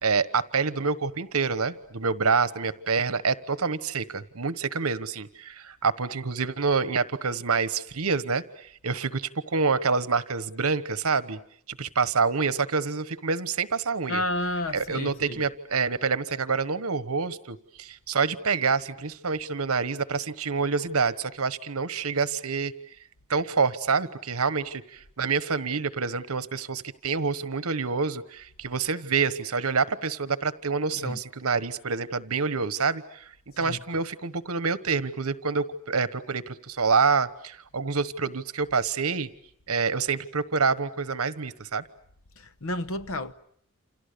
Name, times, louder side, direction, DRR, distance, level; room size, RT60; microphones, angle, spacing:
voice 1, 0.0-11.4 11.7-14.2 14.7-22.7 23.3-39.3 39.7-41.8, right 5 dB, 75° right, 1.2 m, -27 dB
voice 2, 14.1-15.4 31.0-31.2 33.6-33.8 42.4-43.3, left 1 dB, 65° left, 1.1 m, -31 dB
29.0 x 27.5 x 6.9 m
head